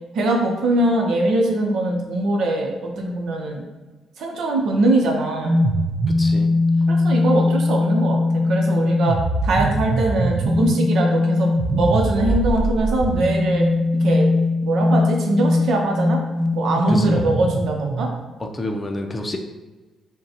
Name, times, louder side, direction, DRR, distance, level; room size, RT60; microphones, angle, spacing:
voice 1, 0.1-3.6 4.2-5.6 6.9-8.2 8.5-9.2 9.4-13.6 14.0-14.3 14.6-16.2 16.5-18.1, right 2 dB, 70° right, 0 dB, 0.8 m, -21 dB
sound 1, 5.4-18.3, left 1 dB, 40° right, 0.5 m, -21 dB
voice 2, 6.2-6.5 16.9-17.2 18.4-19.4, left 1 dB, 25° left, 4 dB, 0.5 m, -28 dB
5.5 x 2.2 x 2.8 m, 1.2 s
cardioid pair, 90°, 0 cm